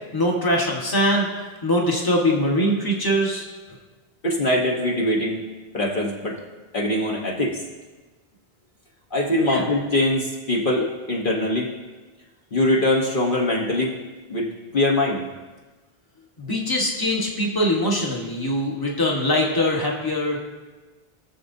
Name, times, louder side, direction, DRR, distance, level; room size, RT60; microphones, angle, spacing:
voice 1, 0.1-1.3 1.6-3.4 9.4-9.7 16.4-20.5, equal, 20° left, -2 dB, 1.4 m, -22 dB
voice 2, 4.2-5.4 5.7-6.4 6.7-7.6 9.1-11.7 12.5-13.9 14.3-14.5 14.7-15.2, left 1 dB, 55° left, -2 dB, 1.3 m, -22 dB
20.0 x 7.0 x 2.7 m, 1.3 s
omnidirectional pair, 1.1 m